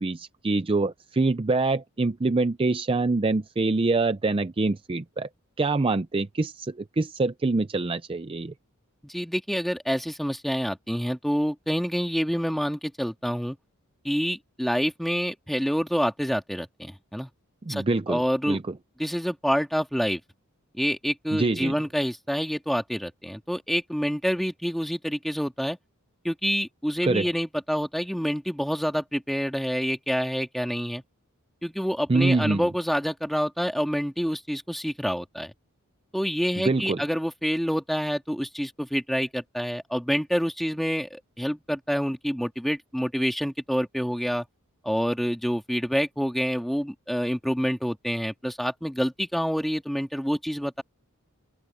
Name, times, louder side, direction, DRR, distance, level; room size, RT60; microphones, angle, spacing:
voice 1, 0.0-5.3 5.6-8.5 17.6-18.6 21.3-21.7 27.0-27.3 32.1-32.6 36.6-37.0, right 3 dB, 25° right, 0.5 m, -25 dB
voice 2, 9.0-13.6 14.0-17.3 17.7-18.6 19.0-20.2 20.7-25.8 26.2-31.0 31.6-35.5 36.1-44.5 44.8-50.8, equal, ahead, 2.0 m, -27 dB
open air
head